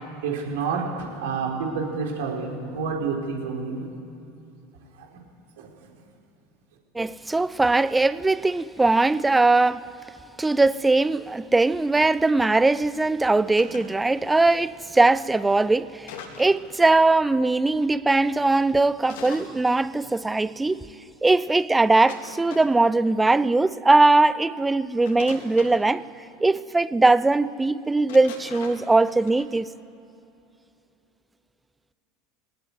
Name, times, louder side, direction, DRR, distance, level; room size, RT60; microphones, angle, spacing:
voice 1, 0.2-3.9 5.0-5.1 5.6-5.7, right 5 dB, 65° right, 4.4 m, -29 dB
voice 2, 6.9-9.9 10.4-20.9 21.2-26.0 26.4-29.7, right 2 dB, 10° right, 0.7 m, -20 dB
sound 1, 13.3-13.9 16.1-16.7 19.1-19.5 22.1-22.9 25.1-25.8 28.1-29.4, left 6 dB, 70° left, 3.4 m, -41 dB
20.0 x 18.5 x 9.6 m
figure-of-eight pair, 75°, 0 cm